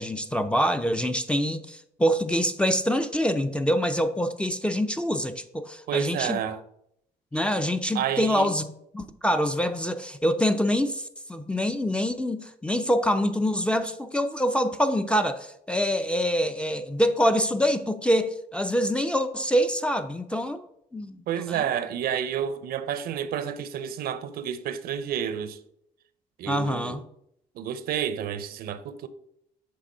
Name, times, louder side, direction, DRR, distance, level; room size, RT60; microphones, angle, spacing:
voice 1, 0.0-6.4 7.3-8.7 8.9-11.0 11.3-20.6 20.9-21.2 21.5-21.6 26.5-27.0, equal, 5° left, 0.4 m, -25 dB
voice 2, 5.9-6.6 7.9-8.5 21.3-25.6 26.4-27.0 27.5-29.1, right 9 dB, 65° right, 0.6 m, -30 dB
7.6 x 3.4 x 5.5 m
cardioid pair, 110°, 17 cm